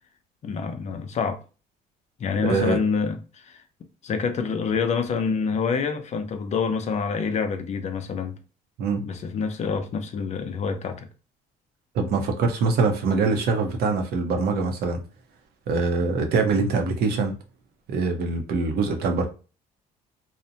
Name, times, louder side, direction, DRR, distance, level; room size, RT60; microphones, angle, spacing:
voice 1, 0.4-1.4 2.2-3.6 4.0-8.4 9.0-11.1, left 5 dB, 45° left, 0.5 m, -27 dB
voice 2, 2.4-2.8 8.8-9.0 11.9-15.0 15.7-17.3 17.9-19.3, right 4 dB, 70° right, 0.7 m, -23 dB
2.6 x 2.1 x 2.7 m
cardioid pair, 110°, 17 cm